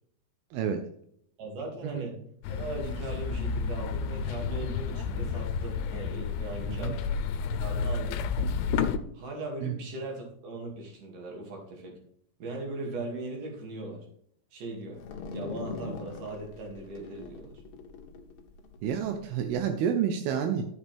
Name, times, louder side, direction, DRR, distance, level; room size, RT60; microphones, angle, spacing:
voice 1, 0.5-0.8 1.8-1.9 6.7-6.9 9.6-9.7 18.8-20.7, right 8 dB, 80° right, 6 dB, 2.3 m, -29 dB
voice 2, 1.4-2.2 2.5-7.0 7.6-8.2 9.1-12.0 12.4-14.1 14.5-15.0 15.3-17.6, right 2 dB, 50° right, 0 dB, 3.7 m, -39 dB
sound 1, 2.4-9.0, left 5 dB, 90° left, 3.0 m, -31 dB
sound 2, 15.0-19.6, left 4 dB, 70° left, 3.1 m, -42 dB
11.5 x 8.4 x 3.5 m, 0.67 s
omnidirectional pair, 5.3 m